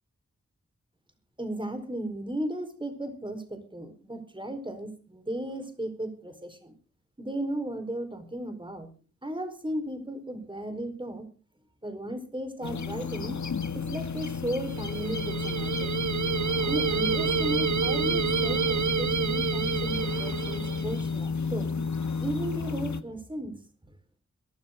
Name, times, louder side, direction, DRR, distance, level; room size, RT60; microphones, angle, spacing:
voice 1, 1.4-6.7 7.2-8.9 9.2-11.3 11.8-13.4 13.7-16.1 16.6-21.8 22.2-23.6, right 1 dB, 15° right, 8 dB, 4.5 m, -35 dB
sound 1, 12.6-23.0, left 4 dB, 70° left, 1.5 m, -32 dB
sound 2, 14.7-21.1, right 6 dB, 70° right, 0.9 m, -29 dB
22.0 x 13.0 x 3.8 m, 0.36 s
wide cardioid pair, 85°, 29 cm